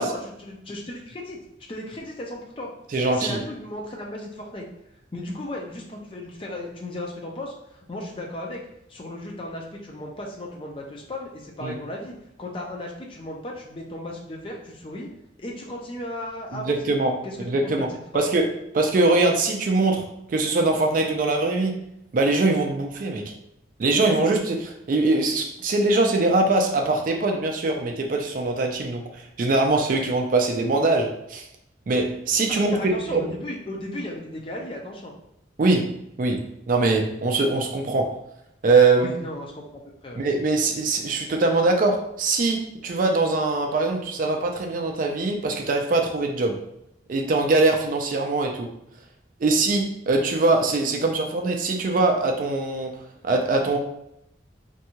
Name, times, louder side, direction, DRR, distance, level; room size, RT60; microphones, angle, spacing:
voice 1, 0.0-1.4 1.7-2.7 3.1-4.7 5.1-8.6 8.9-15.1 15.4-16.9 17.2-17.5 18.1-18.3 32.5-35.1 39.0-40.3, left 1 dB, 30° left, 0 dB, 0.4 m, -35 dB
voice 2, 2.9-3.4 11.6-11.8 16.5-21.8 22.1-23.3 23.8-31.5 31.9-33.4 35.6-38.2 38.6-39.2 40.1-46.6 47.1-48.7 49.4-53.0 53.2-53.8, right 3 dB, 45° right, 3 dB, 0.3 m, -22 dB
2.6 x 2.3 x 2.8 m, 0.81 s
head